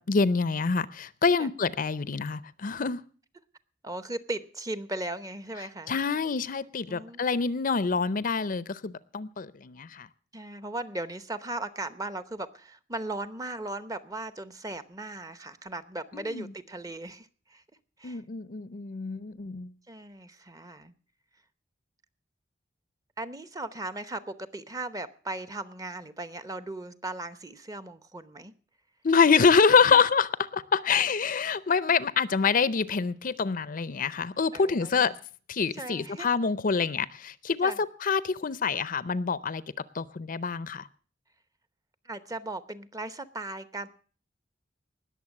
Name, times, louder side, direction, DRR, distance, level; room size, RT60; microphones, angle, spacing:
voice 1, 0.1-3.0 5.9-10.1 16.1-16.5 18.0-19.7 29.0-35.1 35.5-37.7 38.0-39.6 39.9-40.8, left 5 dB, 45° left, 17 dB, 0.6 m, -26 dB
voice 2, 3.8-6.0 6.9-7.2 10.3-17.6 18.0-18.2 19.9-20.9 23.2-28.5 34.5-35.2 35.7-36.3 37.6-37.8 42.0-43.9, right 2 dB, 20° right, 13 dB, 0.8 m, -37 dB
19.5 x 7.1 x 7.2 m, 0.42 s
head